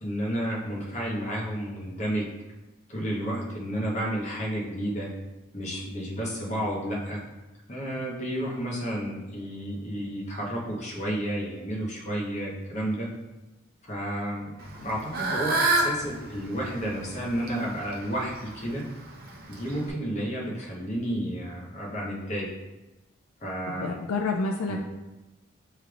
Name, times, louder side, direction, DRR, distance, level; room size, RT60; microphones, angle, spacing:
voice 1, 0.0-2.3 2.9-5.1 5.5-7.2 7.7-13.1 13.8-14.5 14.8-18.9 19.5-22.5 23.4-24.0 24.7-24.8, equal, 35° left, -4 dB, 1.0 m, -31 dB
Fowl / Bird, 14.6-19.9, right 2 dB, 45° right, 0.6 m, -30 dB
voice 2, 23.8-24.8, left 3 dB, 85° left, 2 dB, 0.4 m, -28 dB
6.6 x 3.3 x 2.4 m, 1.1 s
head